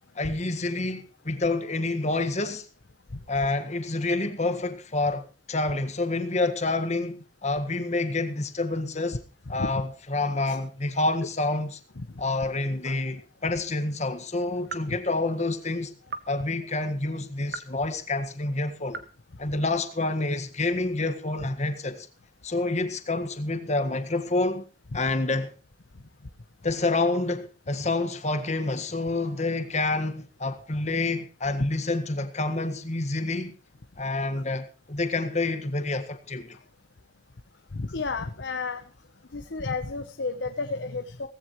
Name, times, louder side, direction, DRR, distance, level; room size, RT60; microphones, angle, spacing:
voice 1, 0.1-2.7 3.3-9.2 9.5-11.8 12.2-16.0 16.3-19.0 19.4-22.1 22.4-24.6 24.9-25.5 26.6-33.5 34.0-36.6, left 2 dB, 40° left, 1.7 m, -28 dB
sound 1, 13.3-13.6 14.6-15.0 16.1-16.3 17.5-17.8 18.9-19.2, right 4 dB, 65° right, 1.5 m, -39 dB
voice 2, 37.7-38.8 39.3-41.3, left 3 dB, 90° left, 1.0 m, -32 dB
18.0 x 15.5 x 3.2 m
head